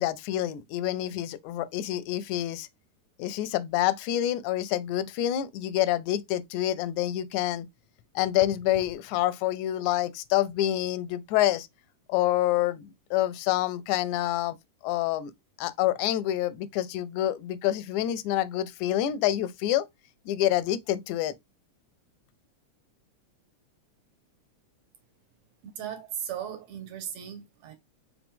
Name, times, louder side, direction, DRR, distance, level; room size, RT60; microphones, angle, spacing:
voice 1, 0.0-2.7 3.2-7.7 8.2-11.7 12.1-14.6 14.8-15.3 15.6-19.9 20.3-21.3, left 13 dB, 85° left, 2.0 m, -27 dB
voice 2, 25.6-27.8, right 9 dB, 70° right, 2.0 m, -37 dB
5.0 x 3.0 x 3.5 m
omnidirectional pair, 3.3 m